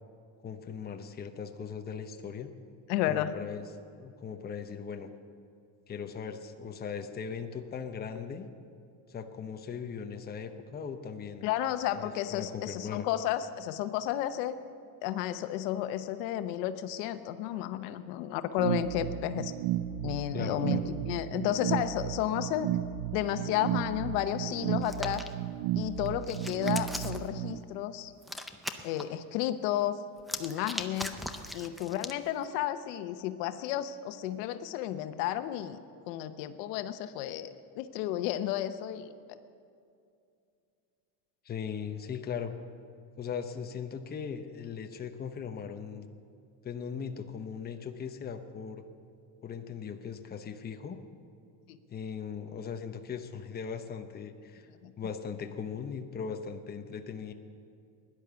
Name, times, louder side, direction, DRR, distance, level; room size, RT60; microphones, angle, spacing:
voice 1, 0.4-2.5 3.1-3.6 4.0-5.1 5.9-8.5 9.1-11.4 12.0-13.1 20.3-20.9 41.4-42.5 43.2-46.0 46.6-48.8 49.4-51.0 51.9-54.7 55.0-57.3, left 6 dB, 20° left, 6 dB, 0.8 m, -39 dB
voice 2, 2.9-3.3 11.4-14.5 15.0-19.5 20.0-20.8 21.0-22.7 23.1-25.2 25.7-28.1 28.8-30.0 30.4-31.2 31.5-35.8 36.1-39.1 51.7-51.8 54.8-54.9, left 12 dB, 80° left, 10 dB, 1.0 m, -32 dB
sound 1, 18.6-27.6, right 12 dB, 65° right, 0.7 m, -33 dB
Hands, 24.8-25.3 26.0-27.3 28.2-29.0 30.2-32.2, equal, ahead, 0.5 m, -39 dB
16.5 x 11.0 x 6.9 m, 2.4 s
supercardioid pair, 130°, 48 cm